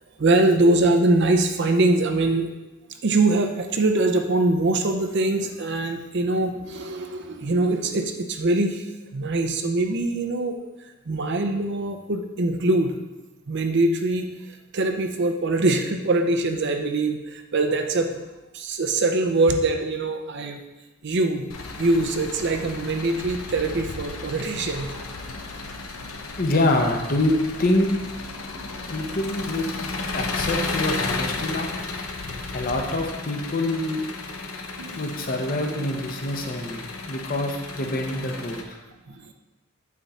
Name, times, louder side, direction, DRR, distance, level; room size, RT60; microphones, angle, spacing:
voice 1, 0.2-2.5 3.0-10.6 11.1-18.2 18.5-20.6 21.0-21.5 21.8-24.9 34.8-35.0 39.1-39.3, right 2 dB, 55° right, 5 dB, 0.6 m, -23 dB
Engine, 21.5-38.6, left 3 dB, 90° left, 0.8 m, -33 dB
voice 2, 26.4-27.9 28.9-29.7 30.1-31.7 32.5-34.0 35.0-38.8, left 1 dB, 45° left, 3 dB, 0.8 m, -25 dB
8.3 x 3.7 x 4.2 m, 1.1 s
head